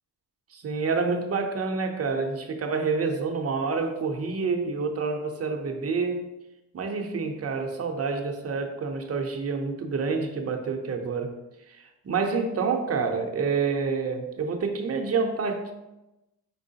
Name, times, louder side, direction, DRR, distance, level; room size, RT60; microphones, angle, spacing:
voice 1, 0.5-6.3 6.7-11.3 11.7-15.7, right 4 dB, 35° right, 4 dB, 0.6 m, -28 dB
4.6 x 3.7 x 2.7 m, 0.97 s
cardioid pair, 100°, 42 cm